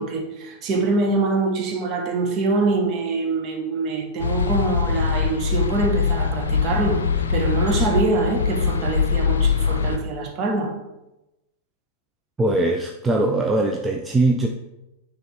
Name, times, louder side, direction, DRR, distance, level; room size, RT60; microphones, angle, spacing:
voice 1, 0.0-10.7, right 3 dB, 35° right, 3 dB, 1.3 m, -24 dB
sound 1, 4.2-10.0, left 6 dB, 65° left, 0.5 m, -22 dB
voice 2, 12.4-14.5, right 2 dB, 10° right, 2 dB, 0.5 m, -21 dB
9.1 x 3.5 x 4.4 m, 0.96 s
figure-of-eight pair, 90°, 0 cm